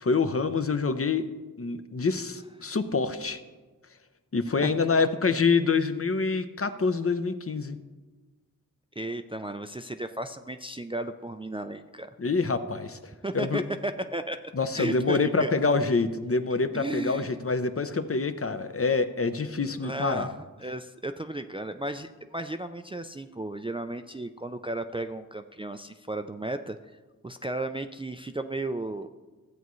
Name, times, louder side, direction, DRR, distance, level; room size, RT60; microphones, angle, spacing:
voice 1, 0.0-1.3 1.6-3.4 4.3-7.8 12.2-13.0 13.3-13.6 14.5-20.3, left 4 dB, 40° left, 10 dB, 0.6 m, -26 dB
voice 2, 9.0-12.1 13.2-15.5 16.7-17.4 19.8-26.8 27.2-29.1, right 1 dB, 15° right, 7 dB, 0.4 m, -34 dB
13.5 x 8.1 x 3.1 m, 1.3 s
wide cardioid pair, 55°, 34 cm